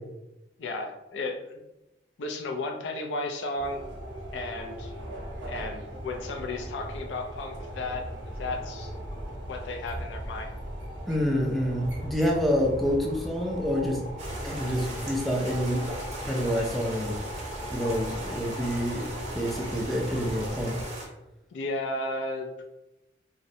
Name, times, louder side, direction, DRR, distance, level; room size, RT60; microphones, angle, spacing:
voice 1, 0.6-1.6 2.2-3.8 4.3-4.9 5.5-8.1 8.4-8.9 9.5-10.6 21.5-22.6, left 2 dB, 85° left, 3 dB, 0.4 m, -34 dB
sound 1, 3.6-20.9, equal, 80° right, 0.6 m, -38 dB
voice 2, 11.1-14.0 14.4-15.8 16.2-17.2 17.7-19.0 19.3-20.7, equal, ahead, -1 dB, 0.4 m, -27 dB
sound 2, 14.2-21.1, right 1 dB, 40° right, 0.6 m, -39 dB
2.6 x 2.0 x 2.7 m, 0.93 s
head